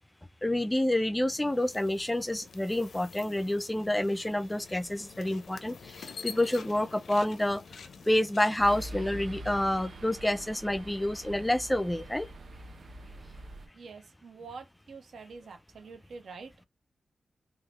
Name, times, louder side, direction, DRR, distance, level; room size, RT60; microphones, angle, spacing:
voice 1, 0.4-7.6 8.0-12.3, left 1 dB, 10° left, 0.4 m, -28 dB
sound 1, 1.3-9.0, left 6 dB, 85° left, 0.6 m, -47 dB
sound 2, 8.6-13.7, right 1 dB, 65° right, 0.9 m, -44 dB
voice 2, 13.7-16.7, right 4 dB, 85° right, 1.2 m, -46 dB
3.9 x 2.8 x 3.0 m
wide cardioid pair, 130°, 0 cm